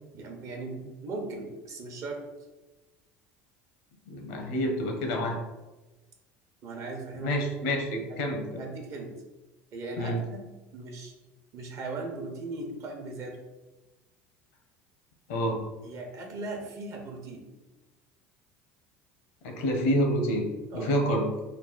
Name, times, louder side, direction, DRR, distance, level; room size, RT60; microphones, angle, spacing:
voice 1, 0.1-2.2 6.6-7.4 7.7-7.8 8.1-9.1 9.7-10.4 10.7-11.1 11.5-13.4 15.8-17.4 20.7-21.0, right 3 dB, 50° right, 2 dB, 0.9 m, -38 dB
voice 2, 4.1-5.4 7.2-8.5 10.0-10.2 15.3-15.6 19.4-21.3, equal, 80° left, 3 dB, 0.8 m, -28 dB
3.4 x 2.2 x 4.0 m, 1.1 s
supercardioid pair, 95°, 7 cm